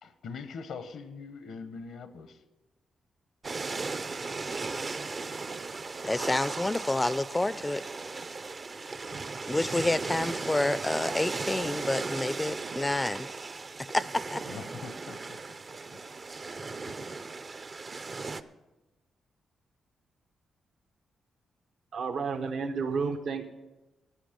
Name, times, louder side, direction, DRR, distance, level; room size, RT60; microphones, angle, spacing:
voice 1, 0.0-2.4 8.6-8.7 9.1-9.3 14.5-15.4 15.7-16.0 16.6-17.1, left 5 dB, 80° left, 1.0 m, -43 dB
sound 1, 3.4-18.4, right 3 dB, 40° right, 0.6 m, -37 dB
voice 2, 6.0-7.9 9.5-13.3 13.9-14.4, left 2 dB, 15° left, 0.4 m, -29 dB
voice 3, 21.9-23.5, right 5 dB, 70° right, 0.9 m, -31 dB
14.5 x 10.0 x 5.2 m
cardioid pair, 70°, 0 cm